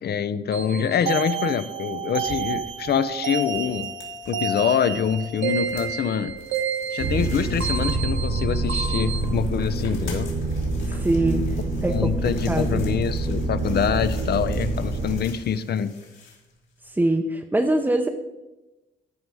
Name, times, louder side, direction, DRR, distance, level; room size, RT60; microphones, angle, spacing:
voice 1, 0.0-3.9 4.3-6.3 6.9-10.3 11.9-15.9, left 7 dB, 55° left, 13 dB, 0.6 m, -25 dB
sound 1, 0.5-9.2, right 6 dB, 75° right, 1.0 m, -30 dB
sound 2, 1.9-17.0, left 5 dB, 75° left, 3.0 m, -46 dB
sound 3, 7.0-15.2, right 2 dB, 55° right, 1.5 m, -26 dB
voice 2, 10.8-11.5 11.8-12.8 16.8-18.1, right 1 dB, 10° right, 4 dB, 0.7 m, -23 dB
13.0 x 5.2 x 4.8 m, 1.1 s
cardioid pair, 90°, 20 cm